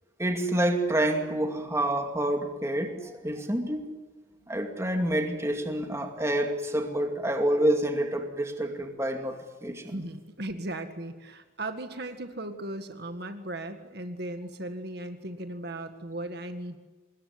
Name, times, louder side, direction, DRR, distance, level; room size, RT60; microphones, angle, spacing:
voice 1, 0.2-3.9 4.5-10.0, right 1 dB, 15° right, 2.4 m, -28 dB
voice 2, 9.9-16.8, right 1 dB, 55° right, 1.9 m, -37 dB
25.5 x 21.0 x 9.7 m
head